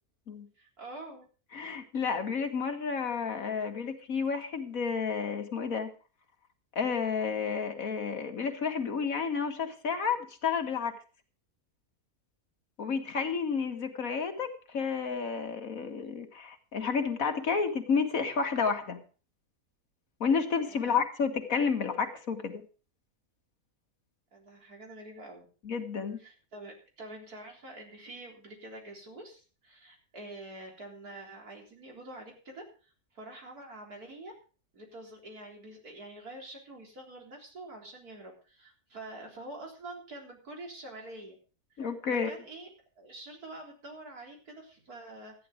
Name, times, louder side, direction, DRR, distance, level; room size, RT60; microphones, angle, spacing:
voice 1, 0.6-1.2 20.7-21.0 24.3-25.5 26.2-32.6 33.1-34.3 34.7-41.4 42.1-42.7 43.0-45.3, right 2 dB, 85° right, 0 dB, 4.3 m, -46 dB
voice 2, 1.5-5.9 6.8-11.0 12.8-19.0 20.2-22.6 25.6-26.2 41.8-42.3, left 5 dB, 65° left, 6 dB, 2.1 m, -31 dB
13.5 x 10.5 x 5.0 m, 0.37 s
omnidirectional pair, 1.5 m